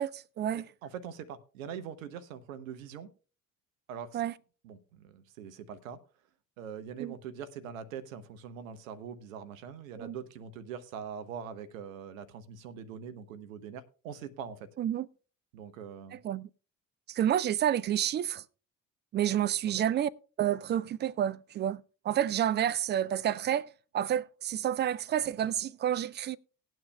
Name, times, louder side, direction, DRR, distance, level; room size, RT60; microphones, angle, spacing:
voice 1, 0.0-0.6 4.1-4.3 7.0-7.1 10.0-10.2 14.8-15.1 16.1-16.5 17.1-18.4 19.1-20.1 20.4-26.4, right 10 dB, 25° right, 0.4 m, -29 dB
voice 2, 0.8-3.1 3.9-4.2 4.6-6.0 6.6-14.7 15.5-16.2 19.6-19.8, right 7 dB, 70° right, 0.9 m, -43 dB
18.5 x 9.1 x 2.2 m
figure-of-eight pair, 50°, 42 cm